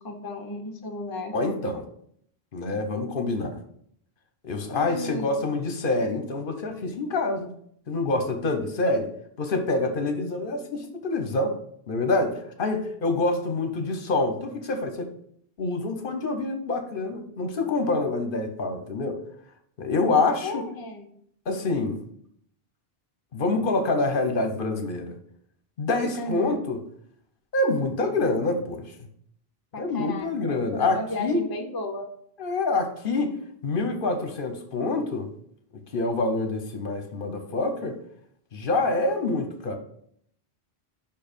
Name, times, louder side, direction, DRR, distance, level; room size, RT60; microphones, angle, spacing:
voice 1, 0.0-1.3 4.6-5.4 20.4-21.1 26.2-26.6 29.7-32.1, left 2 dB, 25° left, 4 dB, 0.7 m, -34 dB
voice 2, 1.3-1.8 2.5-3.6 4.4-7.5 7.9-9.1 9.4-11.6 11.9-15.1 15.6-19.2 19.8-20.7 21.5-22.0 23.3-25.1 25.8-26.8 27.5-29.0 29.8-31.4 32.4-33.3 33.6-35.3 35.9-38.0 38.5-39.8, left 2 dB, 60° left, 5 dB, 1.0 m, -26 dB
5.5 x 4.6 x 5.1 m, 0.67 s
omnidirectional pair, 1.0 m